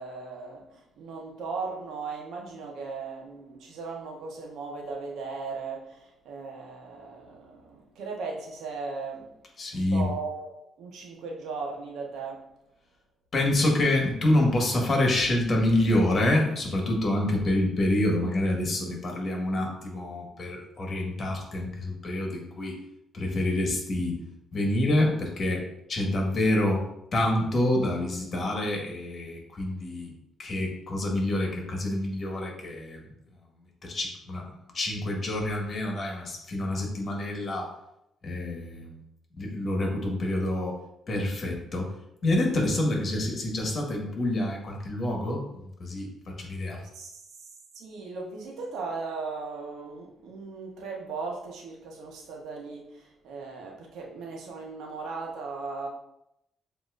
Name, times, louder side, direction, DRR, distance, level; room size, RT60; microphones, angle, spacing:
voice 1, 0.0-9.3 9.7-12.5 46.9-47.5 47.7-55.9, right 4 dB, 80° right, 0 dB, 1.0 m, -37 dB
voice 2, 9.6-10.1 13.3-22.8 23.1-24.2 24.5-25.6 25.9-26.8 27.1-30.1 30.4-33.0 33.8-37.7 38.2-39.0 39.4-40.7 41.1-41.9 42.2-45.4 45.8-46.1 46.4-46.8, left 1 dB, 45° left, 0 dB, 1.4 m, -27 dB
7.3 x 2.8 x 2.4 m, 0.82 s
cardioid pair, 90°, 0 cm